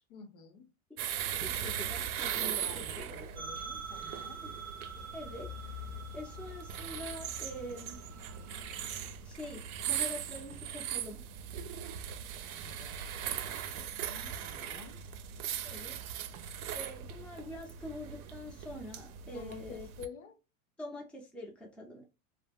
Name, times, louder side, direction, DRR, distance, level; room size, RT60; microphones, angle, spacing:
voice 1, 0.1-0.7 2.4-4.4 12.4-15.1 19.3-20.4, left 6 dB, 80° left, 0.8 m, -50 dB
sound 1, 1.0-20.1, right 9 dB, 80° right, 0.5 m, -39 dB
voice 2, 1.4-3.3 4.4-4.6 5.1-5.5 6.1-8.0 9.2-11.2 15.6-15.9 16.7-19.9 20.8-22.0, left 1 dB, 5° left, 0.4 m, -45 dB
Old Telephone Ring, 3.3-9.0, right 6 dB, 35° right, 0.6 m, -47 dB
sound 2, 4.8-10.7, left 12 dB, 45° left, 0.8 m, -50 dB
2.2 x 2.0 x 3.4 m
hypercardioid pair, 115°, 42 cm